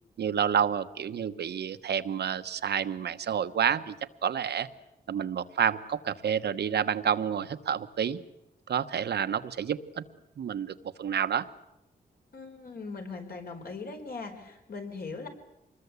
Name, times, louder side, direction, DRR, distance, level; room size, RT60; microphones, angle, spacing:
voice 1, 0.2-3.9 4.2-4.7 5.1-8.2 8.7-10.0 10.4-11.5, right 8 dB, 85° right, 9 dB, 1.1 m, -29 dB
voice 2, 12.3-15.3, left 4 dB, 65° left, 3 dB, 4.7 m, -40 dB
25.5 x 21.0 x 8.2 m, 0.87 s
wide cardioid pair, 130°, 17 cm